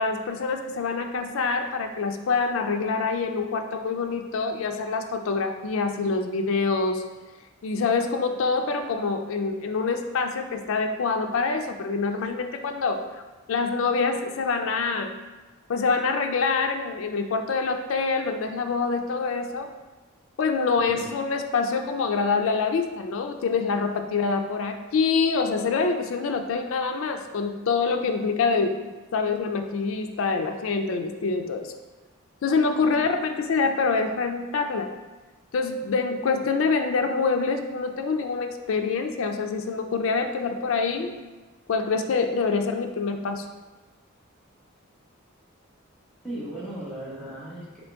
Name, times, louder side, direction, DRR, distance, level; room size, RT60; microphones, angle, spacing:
voice 1, 0.0-7.1 7.6-13.1 13.5-15.1 15.7-19.7 20.4-28.8 29.1-31.7 32.4-34.9 35.5-41.1 41.7-43.5, left 4 dB, 75° left, 6 dB, 0.4 m, -25 dB
voice 2, 20.7-21.1 32.9-33.0 46.2-47.8, right 1 dB, 5° left, -9 dB, 1.3 m, -37 dB
3.7 x 3.6 x 3.5 m, 1.2 s
head